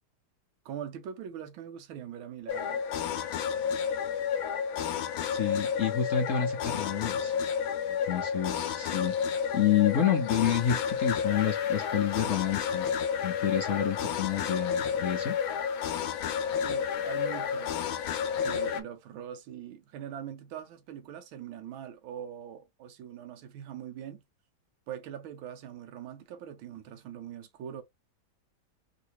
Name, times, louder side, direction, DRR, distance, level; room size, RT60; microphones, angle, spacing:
voice 1, 0.6-2.8 16.6-17.8 18.4-24.2 24.9-27.8, right 9 dB, 85° right, 1.6 m, -42 dB
sound 1, 2.5-18.8, left 7 dB, 85° left, 1.4 m, -31 dB
voice 2, 5.3-7.3 7.9-9.1 9.5-12.9 13.2-15.4, left 9 dB, 65° left, 0.7 m, -29 dB
3.8 x 2.5 x 2.9 m
omnidirectional pair, 2.2 m